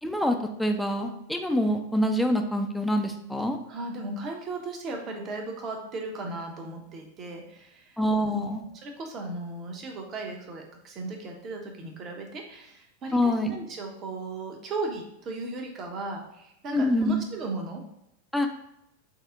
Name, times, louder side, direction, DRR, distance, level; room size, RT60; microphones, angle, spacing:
voice 1, 0.0-3.6 8.0-8.6 13.1-13.5 16.7-17.2 18.3-18.5, equal, ahead, 4 dB, 0.4 m, -25 dB
voice 2, 3.7-8.5 8.8-17.8, right 2 dB, 30° right, 2 dB, 0.7 m, -36 dB
3.7 x 2.0 x 3.6 m, 0.82 s
figure-of-eight pair, 90°, 0 cm